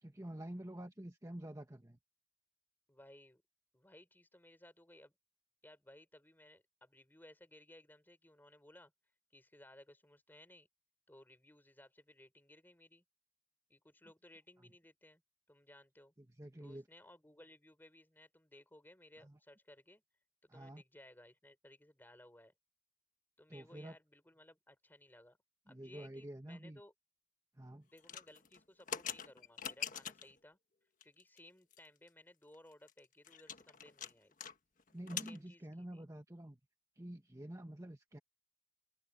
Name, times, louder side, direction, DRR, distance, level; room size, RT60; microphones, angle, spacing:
voice 1, 0.0-2.0 16.2-16.8 19.2-19.4 20.5-20.8 23.5-23.9 25.7-26.8 27.5-27.9 34.9-36.6 37.0-38.2, right 1 dB, 20° right, 1.5 m, -48 dB
voice 2, 2.9-3.4 3.7-5.1 5.6-8.9 9.3-10.7 11.1-13.0 13.7-15.2 15.5-16.1 16.6-20.0 20.4-22.5 23.4-25.4 25.7-26.9 27.9-30.6 31.0-34.3 35.1-36.1, left 1 dB, 10° left, 4.3 m, -60 dB
sound 1, 28.0-30.4 31.0-31.4 31.7-31.8 32.1-32.2 32.5-34.5 34.8-35.4, left 8 dB, 50° left, 1.4 m, -44 dB
open air
head